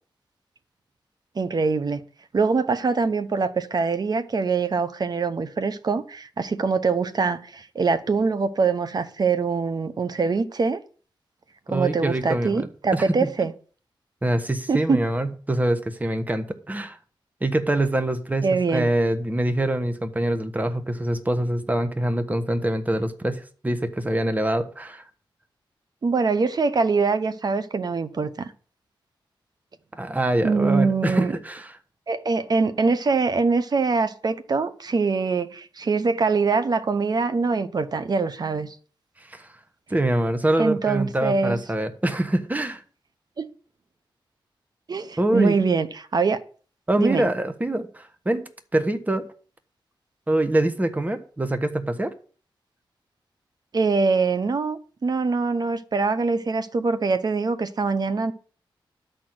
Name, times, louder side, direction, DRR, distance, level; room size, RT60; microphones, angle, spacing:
voice 1, 1.3-2.0 2.3-10.8 11.7-13.5 14.7-15.0 18.4-18.9 26.0-28.5 30.4-31.3 32.1-38.8 40.6-41.6 43.4-43.5 44.9-46.4 47.0-47.3 53.7-58.3, right 4 dB, 50° right, 1.0 m, -23 dB
voice 2, 11.7-13.0 14.2-17.0 17.4-18.5 18.7-25.0 29.9-31.8 39.3-39.5 39.9-42.8 45.2-45.6 46.9-49.3 50.3-52.1, right 1 dB, 20° right, 1.4 m, -24 dB
12.0 x 4.5 x 7.8 m
cardioid pair, 85°, 9 cm